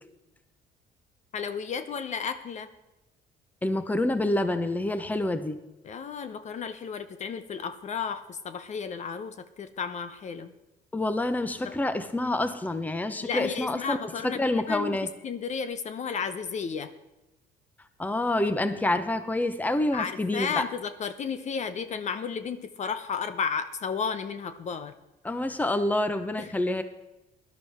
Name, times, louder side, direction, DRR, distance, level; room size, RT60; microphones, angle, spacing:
voice 1, 1.3-2.7 5.8-10.5 11.6-11.7 13.2-15.0 15.2-16.9 19.9-24.9 26.4-26.5, left 6 dB, 45° left, 11 dB, 0.8 m, -33 dB
voice 2, 3.6-5.6 10.9-14.0 14.2-15.1 18.0-20.6 25.2-26.8, left 1 dB, 10° left, 10 dB, 0.9 m, -27 dB
17.0 x 12.0 x 3.6 m, 0.98 s
cardioid pair, 110°, 17 cm